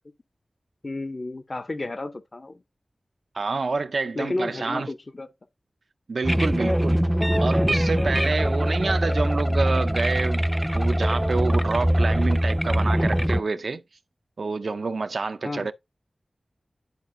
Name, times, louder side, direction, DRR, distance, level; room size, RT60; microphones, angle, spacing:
voice 1, 0.8-2.6 4.2-5.3 15.4-15.7, left 2 dB, 45° left, 0.6 m, -32 dB
voice 2, 3.3-4.9 6.1-7.0 7.4-10.4 10.7-13.8 14.4-15.7, right 3 dB, 70° right, 0.5 m, -27 dB
sound 1, 6.2-13.4, equal, ahead, 0.5 m, -22 dB
10.5 x 4.7 x 2.6 m
wide cardioid pair, 65°, 0 cm